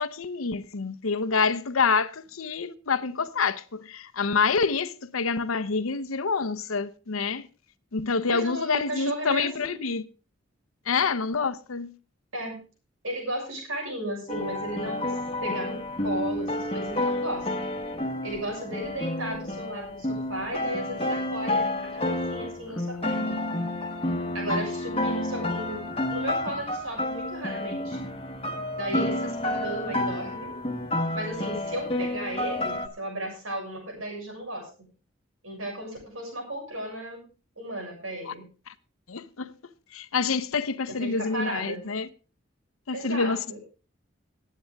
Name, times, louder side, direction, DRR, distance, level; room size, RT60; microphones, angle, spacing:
voice 1, 0.0-7.5 7.9-10.0 10.9-11.9 38.3-38.4 38.7-38.8 39.1-39.5 39.9-42.1 42.9-43.6, left 5 dB, 90° left, 0.8 m, -27 dB
voice 2, 8.3-9.8 12.3-12.6 13.0-15.1 15.4-17.7 18.2-23.4 24.3-25.8 26.1-28.0 28.8-30.5 31.1-34.7 35.4-37.3 37.6-38.5 40.9-41.8 42.9-43.6, right 1 dB, 80° right, 6.6 m, -35 dB
sound 1, 14.3-32.9, left 1 dB, 25° left, 1.2 m, -30 dB
19.0 x 8.5 x 3.5 m
head